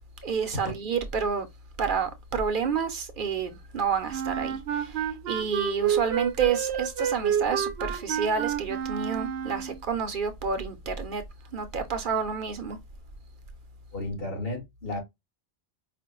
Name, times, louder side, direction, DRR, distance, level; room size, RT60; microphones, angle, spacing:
voice 1, 0.2-1.5 1.8-11.2 11.5-12.8, right 6 dB, 60° right, 0.8 m, -29 dB
Wind instrument woodwind instrument, 4.1-9.8, right 8 dB, 90° right, 0.8 m, -29 dB
voice 2, 13.9-15.0, left 2 dB, 65° left, 2.0 m, -33 dB
4.9 x 2.1 x 2.9 m
omnidirectional pair, 1.0 m